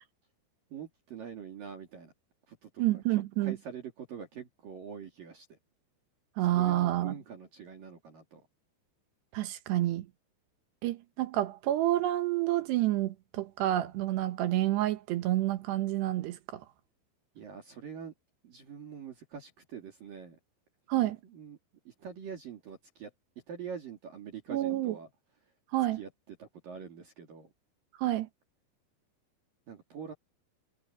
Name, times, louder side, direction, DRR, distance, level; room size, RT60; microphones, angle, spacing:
voice 1, 0.7-2.1 2.5-5.6 6.4-8.4 17.4-18.1 18.4-20.4 21.2-21.6 21.9-23.1 23.5-25.1 25.9-27.5 29.7-30.1, right 7 dB, 50° right, 4.0 m, -45 dB
voice 2, 2.8-3.6 6.4-7.1 9.3-10.1 10.8-16.6 20.9-21.2 24.5-24.9 25.7-26.0 28.0-28.3, right 14 dB, 70° right, 3.1 m, -29 dB
omnidirectional pair, 5.7 m